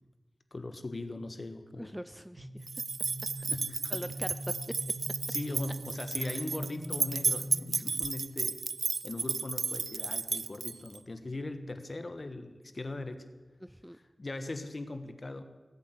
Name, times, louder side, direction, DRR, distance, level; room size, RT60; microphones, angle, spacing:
voice 1, 0.5-2.0 3.5-4.0 5.3-8.6 9.0-13.2 14.2-15.4, left 2 dB, 45° left, 8 dB, 1.4 m, -40 dB
voice 2, 1.8-2.7 3.9-4.8 6.2-6.4 13.6-14.0, equal, 5° right, 12 dB, 0.5 m, -42 dB
sound 1, 2.4-8.0, equal, 90° right, 2.7 m, -42 dB
sound 2, 2.7-11.0, right 4 dB, 70° right, 0.4 m, -33 dB
18.0 x 8.3 x 8.3 m, 1.3 s
wide cardioid pair, 90°, 0 cm